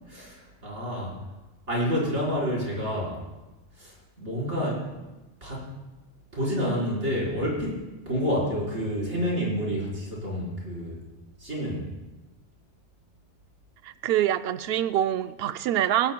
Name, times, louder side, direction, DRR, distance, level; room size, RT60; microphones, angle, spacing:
voice 1, 0.1-1.1 1.7-3.2 3.8-4.9 5.4-5.6 6.3-7.8 8.1-11.0 11.4-11.9, equal, 85° right, -5 dB, 5.0 m, -29 dB
voice 2, 13.8-16.1, right 11 dB, 65° right, 12 dB, 0.8 m, -25 dB
20.5 x 16.0 x 2.3 m, 1.1 s
omnidirectional pair, 1.2 m